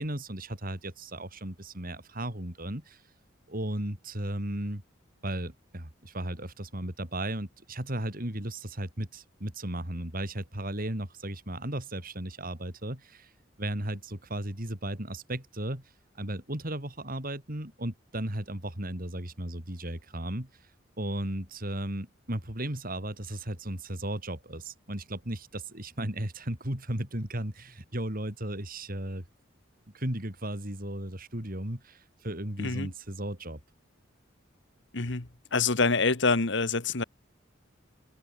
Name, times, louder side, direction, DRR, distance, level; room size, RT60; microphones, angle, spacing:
voice 1, 0.0-3.0 3.5-4.8 5.2-13.3 13.6-15.9 16.2-20.5 21.0-29.2 29.9-33.6, right 1 dB, 45° right, 4.6 m, -35 dB
voice 2, 32.6-32.9 34.9-37.0, left 4 dB, 65° left, 1.6 m, -26 dB
head